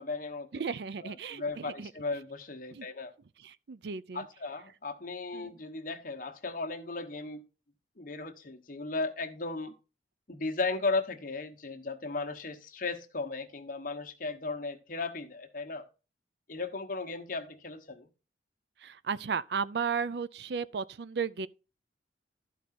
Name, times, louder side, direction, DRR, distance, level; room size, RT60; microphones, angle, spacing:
voice 1, 0.0-0.6 1.0-3.1 4.1-7.4 8.0-9.7 10.3-15.8 16.5-18.1, left 3 dB, 50° left, 1.1 m, -36 dB
voice 2, 0.5-1.9 2.7-2.9 3.4-4.3 5.3-5.5 18.8-21.5, right 6 dB, 65° right, 0.4 m, -34 dB
12.5 x 4.8 x 4.3 m
head